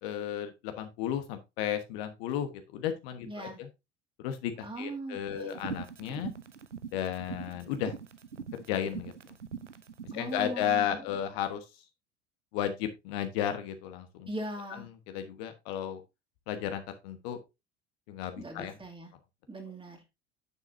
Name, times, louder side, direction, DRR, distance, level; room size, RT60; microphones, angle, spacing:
voice 1, 0.0-3.7 4.2-6.3 6.9-7.9 8.5-9.1 10.1-11.6 12.5-14.3 15.1-16.0 16.5-17.4 18.1-18.7, left 10 dB, 60° left, 7 dB, 1.3 m, -34 dB
voice 2, 3.2-3.6 4.6-5.6 10.1-11.2 14.3-14.9 18.4-19.1 19.5-20.0, right 2 dB, 15° right, 2 dB, 2.5 m, -40 dB
sound 1, 5.4-10.3, right 7 dB, 90° right, 0.7 m, -41 dB
9.7 x 7.5 x 2.7 m, 0.24 s
figure-of-eight pair, 70°, 35 cm